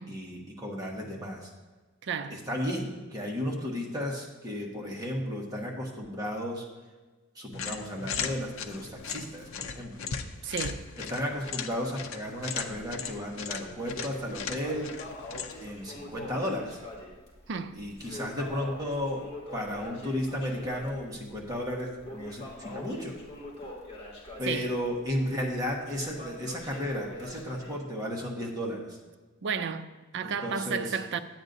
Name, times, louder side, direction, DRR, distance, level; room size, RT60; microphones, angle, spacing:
voice 1, 0.1-1.5 2.3-6.6 7.3-10.1 11.0-14.9 15.6-16.8 17.7-23.2 24.4-29.0 30.2-31.0, equal, 20° right, 1.5 m, -34 dB
voice 2, 2.0-2.4 10.4-10.9 17.5-17.9 24.4-24.7 29.4-31.2, right 6 dB, 60° right, 0.5 m, -33 dB
sound 1, 7.5-15.8, left 6 dB, 75° left, 0.6 m, -38 dB
Crackle, 8.2-10.9 11.1-11.2 11.7-11.8 12.5-13.1 13.5-27.8, left 1 dB, 30° left, 2.2 m, -44 dB
11.5 x 8.6 x 2.7 m
head